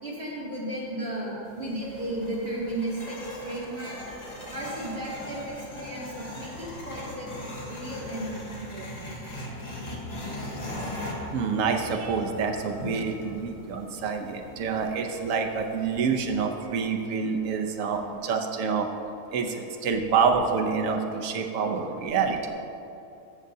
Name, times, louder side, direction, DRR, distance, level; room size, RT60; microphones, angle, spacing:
voice 1, 0.0-3.2 3.4-4.0 4.5-8.9, right 1 dB, 40° right, -8 dB, 2.6 m, -34 dB
sound 1, 1.5-16.3, left 1 dB, 30° left, 1.0 m, -40 dB
voice 2, 11.3-18.9 19.3-22.5, right 5 dB, 65° right, 4 dB, 1.1 m, -27 dB
15.0 x 6.4 x 2.7 m, 2.8 s
omnidirectional pair, 1.6 m